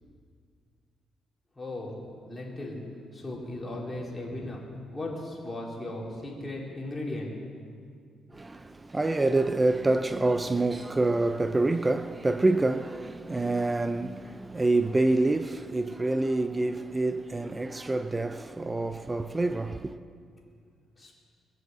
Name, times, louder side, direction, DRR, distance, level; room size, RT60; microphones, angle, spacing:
voice 1, 1.6-1.9 2.2-2.8 3.1-4.6 4.9-7.3 21.0-21.1, left 1 dB, 15° left, 4.4 m, -36 dB
voice 2, 8.3-20.0, right 2 dB, 20° right, 0.6 m, -27 dB
22.5 x 7.9 x 7.8 m
cardioid pair, 90°, 0 cm